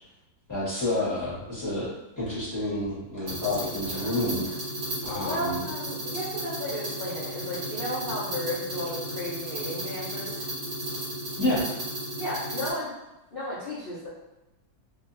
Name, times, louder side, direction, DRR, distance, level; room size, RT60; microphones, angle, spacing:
voice 1, 0.5-1.9 2.2-4.6 5.0-5.6 11.4-11.6, left 1 dB, 10° left, -11 dB, 1.1 m, -29 dB
sound 1, 3.3-12.7, right 1 dB, 65° right, 1.7 m, -34 dB
voice 2, 5.2-10.4 12.2-12.9 13.3-14.1, left 1 dB, 75° left, -11 dB, 0.5 m, -34 dB
3.0 x 2.8 x 2.6 m, 0.95 s
omnidirectional pair, 2.1 m